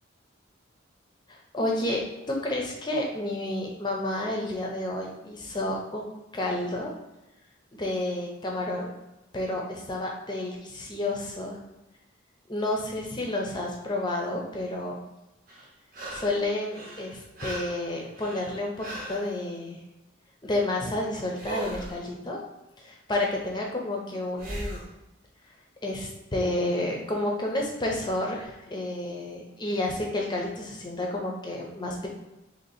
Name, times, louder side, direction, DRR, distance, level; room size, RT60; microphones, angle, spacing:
voice 1, 1.3-6.9 7.7-8.9 9.3-11.6 12.5-15.0 16.1-19.8 20.4-22.4 22.8-24.8 25.8-32.1, left 1 dB, 20° left, -1 dB, 0.6 m, -30 dB
sound 1, 15.5-16.4 16.7-19.3 21.3-22.0 24.4-24.9 27.8-27.9, right 1 dB, 45° right, 0.9 m, -38 dB
2.9 x 2.9 x 4.1 m, 0.98 s
head